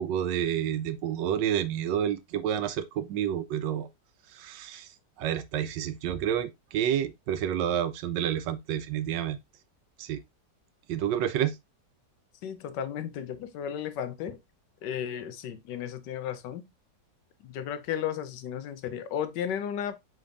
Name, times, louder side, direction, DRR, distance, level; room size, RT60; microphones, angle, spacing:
voice 1, 0.0-3.9 4.3-9.4 10.0-10.2 10.9-11.6, right 10 dB, 90° right, 1.3 m, -29 dB
voice 2, 12.4-14.4 14.8-16.7 17.4-20.0, left 9 dB, 80° left, 1.3 m, -34 dB
5.1 x 4.1 x 2.5 m
omnidirectional pair, 1.9 m